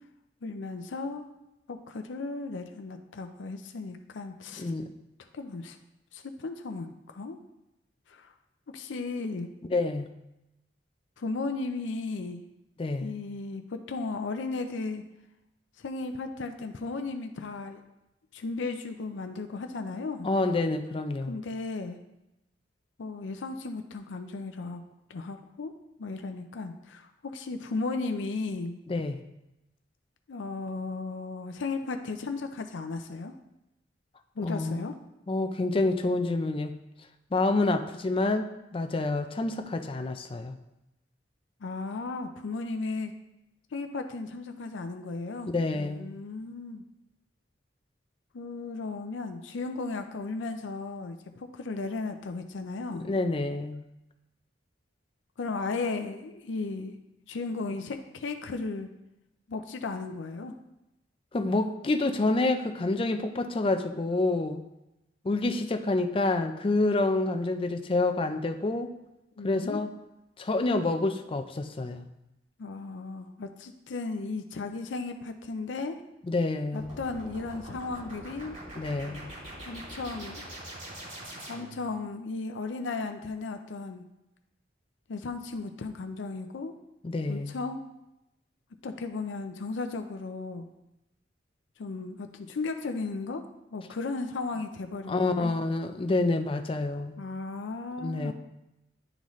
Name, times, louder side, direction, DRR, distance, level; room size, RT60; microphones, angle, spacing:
voice 1, 0.4-1.3 1.7-4.7 5.3-5.8 6.1-7.4 8.1-8.3 8.7-9.5 11.2-12.4 13.0-15.0 15.8-17.8 18.3-20.3 21.3-22.0 23.0-24.8 25.1-25.7 26.0-28.8 30.3-33.3 34.4-34.9 41.6-43.1 43.7-46.8 48.3-53.1 55.4-57.0 57.3-58.9 59.5-60.5 69.4-69.8 72.6-76.0 76.7-78.6 79.7-80.4 81.5-84.0 85.1-86.8 87.3-87.8 88.8-90.7 91.8-93.4 93.7-95.5 97.2-98.3, left 3 dB, 80° left, 6 dB, 0.5 m, -35 dB
voice 2, 9.7-10.1 12.8-13.1 20.2-21.3 28.9-29.2 34.4-34.9 35.3-36.8 37.3-40.5 45.5-46.1 53.0-53.8 61.3-64.6 65.2-68.9 69.4-69.9 70.4-72.1 76.3-77.0 78.8-79.3 87.0-87.6 95.1-97.2 98.0-98.3, left 2 dB, 30° left, 7 dB, 0.4 m, -28 dB
sound 1, 76.7-81.9, right 1 dB, 40° right, 2.6 m, -43 dB
9.9 x 3.9 x 3.1 m, 0.91 s
head